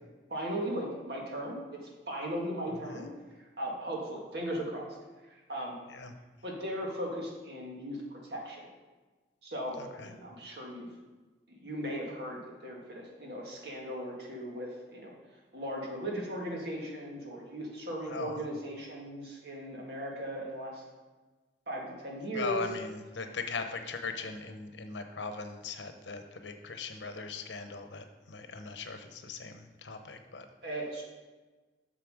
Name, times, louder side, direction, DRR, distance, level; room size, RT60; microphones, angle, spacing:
voice 1, 0.3-3.1 3.6-4.9 5.3-5.8 6.4-8.7 9.4-10.9 11.5-15.1 15.5-20.8 21.7-22.6 30.6-31.0, equal, 60° right, -1 dB, 1.9 m, -37 dB
voice 2, 18.1-18.4 22.3-30.5, left 4 dB, 80° left, 7 dB, 0.8 m, -39 dB
7.4 x 6.6 x 5.0 m, 1.3 s
head